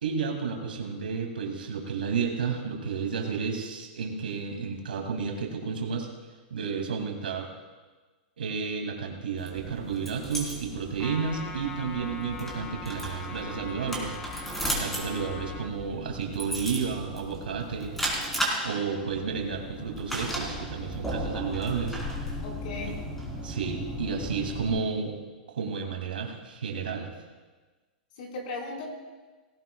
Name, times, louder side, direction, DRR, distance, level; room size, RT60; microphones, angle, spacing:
voice 1, 0.0-6.1 6.5-7.5 8.4-14.2 14.7-17.9 18.6-22.0 23.4-25.2 25.5-27.1, right 5 dB, 90° right, 2 dB, 2.5 m, -32 dB
sound 1, 9.4-24.8, equal, 5° left, 3.7 m, -35 dB
Trumpet, 11.0-15.7, left 5 dB, 25° left, 1.6 m, -42 dB
voice 2, 22.4-23.0 24.2-24.3 28.1-28.9, left 2 dB, 65° left, -1 dB, 4.7 m, -37 dB
18.5 x 17.0 x 2.4 m, 1.3 s
hypercardioid pair, 125°, 5 cm